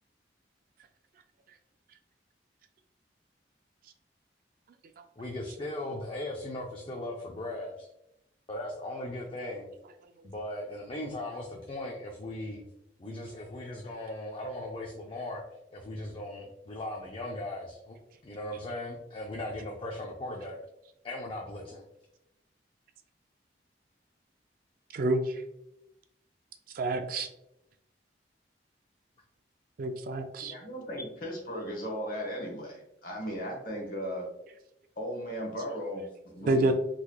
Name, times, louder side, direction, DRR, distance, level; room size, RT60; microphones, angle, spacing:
voice 1, 5.2-7.9 8.5-9.7 10.2-12.6 13.0-15.4 15.7-18.0 18.2-20.6 21.0-21.8, left 1 dB, 30° left, -1 dB, 0.4 m, -38 dB
voice 2, 26.8-27.3 29.8-30.5 36.5-36.7, right 2 dB, 50° right, 8 dB, 0.3 m, -27 dB
voice 3, 30.4-34.3 35.0-36.7, equal, 50° left, 0 dB, 1.1 m, -36 dB
3.8 x 3.1 x 2.2 m, 0.84 s
head